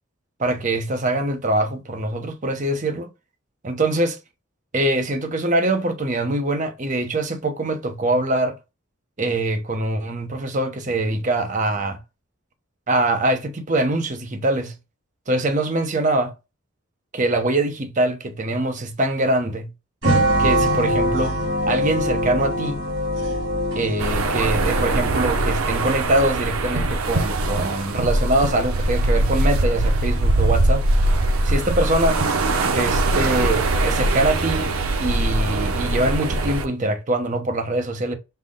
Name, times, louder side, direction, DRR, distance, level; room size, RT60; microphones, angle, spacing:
voice 1, 0.4-3.1 3.6-4.2 4.7-8.6 9.2-12.0 12.9-14.7 15.3-16.3 17.1-19.7 20.4-21.4 21.7-22.8 23.8-30.8 31.4-32.2 32.6-34.7 35.0-38.1, right 1 dB, 35° right, 0.7 m, -23 dB
sound 1, 20.0-25.2, equal, 60° right, 2.2 m, -23 dB
sound 2, 24.0-36.7, right 2 dB, 90° right, 0.7 m, -21 dB
5.6 x 2.1 x 3.7 m
head